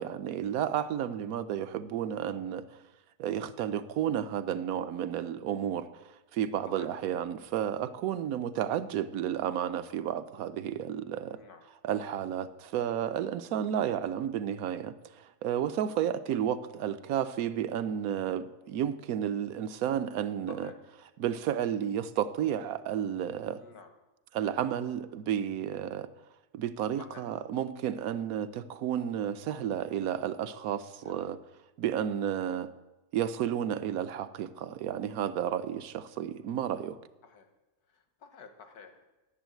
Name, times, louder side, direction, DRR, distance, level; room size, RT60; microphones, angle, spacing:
voice 1, 0.0-2.8 3.2-11.4 11.8-20.7 21.2-23.6 24.3-26.1 26.5-31.4 31.8-32.7 33.1-37.0, right 9 dB, 75° right, 1.1 m, -32 dB
voice 2, 11.2-11.6 20.5-20.8 23.6-23.9 27.0-27.2 31.0-31.3 37.2-37.5 37.9-39.0, left 5 dB, 85° left, 1.8 m, -50 dB
11.5 x 7.2 x 9.0 m
omnidirectional pair, 1.6 m